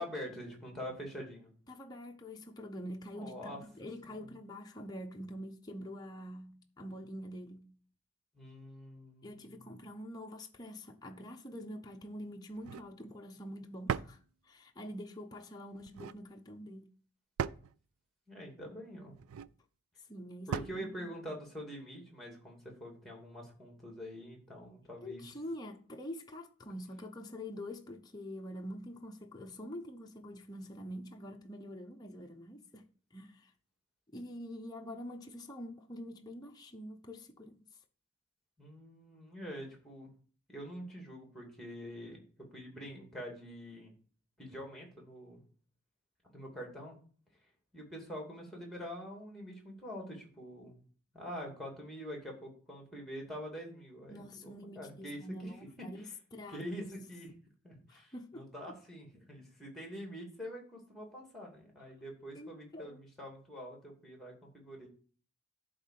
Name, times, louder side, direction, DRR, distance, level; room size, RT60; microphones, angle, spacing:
voice 1, 0.0-1.5 3.1-3.6 4.1-4.3 8.3-9.7 18.3-19.2 20.5-25.2 38.6-40.1 40.5-43.9 44.4-45.4 46.3-47.0 47.7-50.8 51.1-56.1 56.5-57.3 57.6-64.9, equal, ahead, 2.6 m, -45 dB
voice 2, 1.7-7.7 9.2-14.2 14.5-16.9 20.1-20.5 20.8-21.1 25.0-32.9 33.1-33.5 34.1-37.6 54.1-56.1 56.3-56.8 57.9-58.7 62.3-63.0, equal, 20° left, 0.9 m, -46 dB
sound 1, 12.5-12.9 13.9-14.2 15.8-16.2 17.4-17.7 19.1-19.5 20.5-20.8, right 7 dB, 85° right, 0.4 m, -37 dB
11.5 x 3.9 x 7.5 m
head